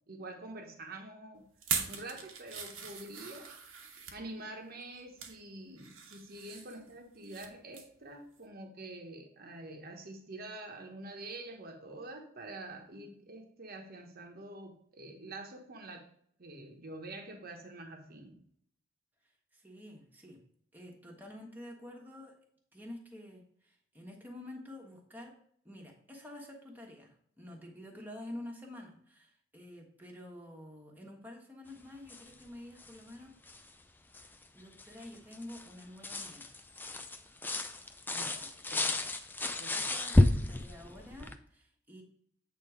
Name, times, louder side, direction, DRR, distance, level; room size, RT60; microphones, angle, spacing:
voice 1, 0.1-1.5 1.9-3.5 4.1-16.1 16.4-18.4 38.1-39.0 39.6-39.9, right 2 dB, 45° right, 3 dB, 1.1 m, -46 dB
sound 1, 1.6-4.2 4.8-5.4 5.8-7.5 7.7-8.0 8.4-8.5, right 6 dB, 75° right, 1.2 m, -40 dB
voice 2, 19.5-20.4 20.7-22.3 22.7-25.3 25.6-33.3 34.5-36.5 38.3-38.5 39.4-42.0, left 1 dB, 10° right, 0 dB, 1.3 m, -49 dB
sound 2, 32.1-32.5 32.8-33.0 33.5-33.7 34.1-41.4, left 1 dB, 10° left, 0.4 m, -31 dB
8.5 x 3.8 x 4.9 m, 0.65 s
head